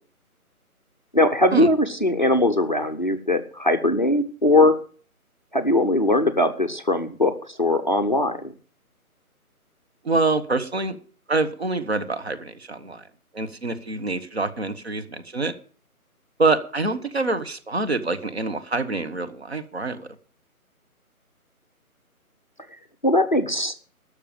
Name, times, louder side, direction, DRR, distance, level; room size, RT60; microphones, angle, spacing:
voice 1, 1.1-4.8 5.5-7.3 7.6-8.4 23.0-23.7, left 1 dB, 30° left, 7 dB, 0.7 m, -20 dB
voice 2, 10.0-11.0 11.3-13.0 13.3-15.5 16.4-20.1, right 3 dB, 45° right, 9 dB, 1.2 m, -26 dB
12.5 x 6.6 x 8.8 m, 0.42 s
figure-of-eight pair, 175°, 44 cm